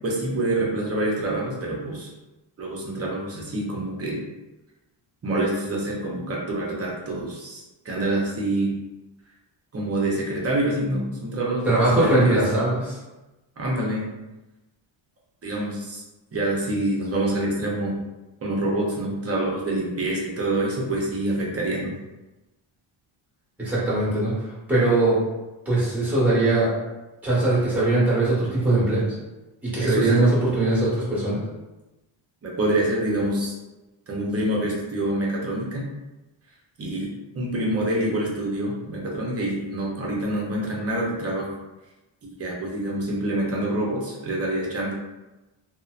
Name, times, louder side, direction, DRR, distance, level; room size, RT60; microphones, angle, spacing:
voice 1, 0.0-2.1 2.6-4.2 5.2-8.7 9.7-11.7 11.9-12.4 13.6-14.1 15.4-16.0 16.3-18.0 18.4-22.0 29.8-30.2 32.4-33.5 34.1-35.8 36.8-41.5 42.2-44.9, right 1 dB, 30° right, -3 dB, 0.6 m, -26 dB
voice 2, 11.6-13.0 23.6-25.1 25.6-26.7 27.2-29.1 29.6-31.4, right 2 dB, 5° right, -10 dB, 1.1 m, -21 dB
2.6 x 2.0 x 2.4 m, 1.1 s
cardioid pair, 140°, 47 cm